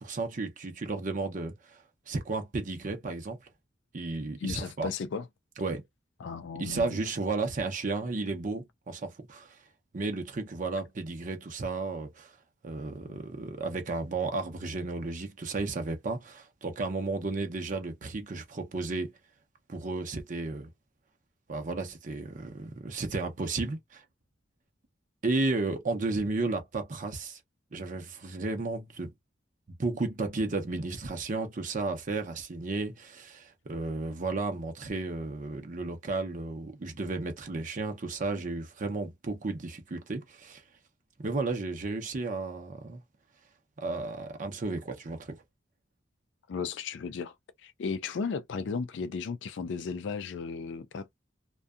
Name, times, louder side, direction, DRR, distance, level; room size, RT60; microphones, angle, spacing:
voice 1, 0.0-3.4 3.9-4.9 5.6-5.8 6.6-9.6 9.9-12.4 12.6-19.1 19.7-20.7 21.5-24.0 25.2-27.4 27.7-29.1 29.8-40.6 41.2-43.0 43.8-45.4, right 3 dB, 45° right, 0.6 m, -33 dB
voice 2, 4.4-5.3 6.2-7.0 13.0-13.2 46.5-51.1, left 5 dB, 65° left, 0.4 m, -35 dB
2.6 x 2.2 x 2.3 m
head